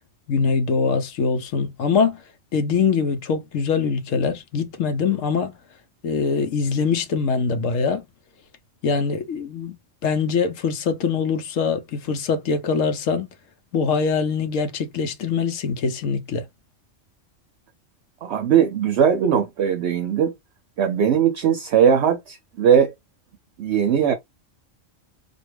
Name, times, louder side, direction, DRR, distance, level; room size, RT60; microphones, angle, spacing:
voice 1, 0.3-2.2 2.5-5.6 6.0-8.0 8.8-13.3 13.7-16.5, left 5 dB, 85° left, 1.1 m, -23 dB
voice 2, 18.2-20.3 20.8-22.9 23.6-24.1, right 8 dB, 65° right, 0.8 m, -19 dB
4.0 x 2.4 x 3.2 m
omnidirectional pair, 1.3 m